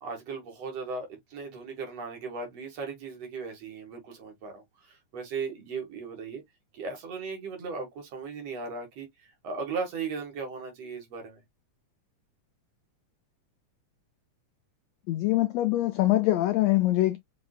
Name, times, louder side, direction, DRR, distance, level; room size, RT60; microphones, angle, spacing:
voice 1, 0.0-6.4 6.7-11.4, right 4 dB, 60° right, 2.6 m, -37 dB
voice 2, 15.1-17.2, left 16 dB, 80° left, 1.5 m, -24 dB
6.0 x 3.3 x 2.2 m
omnidirectional pair, 3.5 m